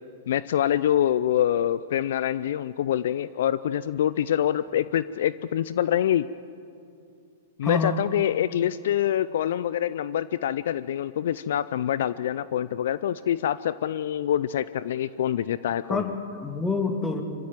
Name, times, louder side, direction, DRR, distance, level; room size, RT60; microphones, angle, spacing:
voice 1, 0.3-6.3 7.6-16.1, left 10 dB, 65° left, 17 dB, 0.5 m, -25 dB
voice 2, 7.6-8.0 15.9-17.2, left 3 dB, 10° left, 4 dB, 2.7 m, -27 dB
26.0 x 15.5 x 9.0 m, 2.5 s
hypercardioid pair, 110°, 0 cm